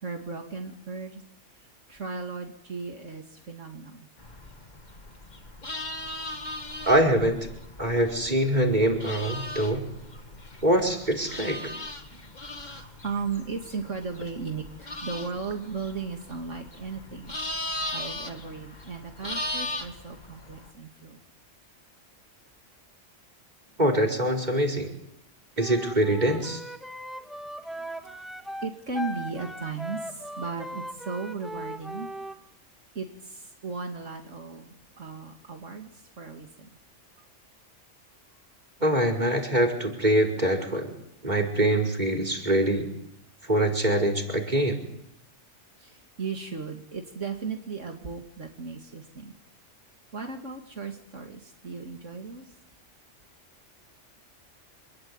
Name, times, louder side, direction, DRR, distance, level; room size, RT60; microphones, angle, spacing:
voice 1, 0.0-1.2 1.9-4.1 11.7-11.8 12.1-17.4 17.9-21.2 27.8-28.3 28.6-32.1 32.9-35.9 36.2-36.7 45.8-49.3 50.1-52.5, right 4 dB, 80° right, 3 dB, 2.8 m, -36 dB
sound 1, 4.2-20.7, left 1 dB, 35° left, 2.3 m, -38 dB
voice 2, 6.8-7.4 7.8-9.9 10.6-11.6 23.8-24.9 25.6-26.6 38.8-40.9 41.2-42.9 43.4-44.8, right 1 dB, 35° right, 5 dB, 5.1 m, -24 dB
Wind instrument woodwind instrument, 25.6-32.4, equal, ahead, 2.1 m, -38 dB
27.0 x 21.0 x 9.7 m, 0.75 s
omnidirectional pair, 1.3 m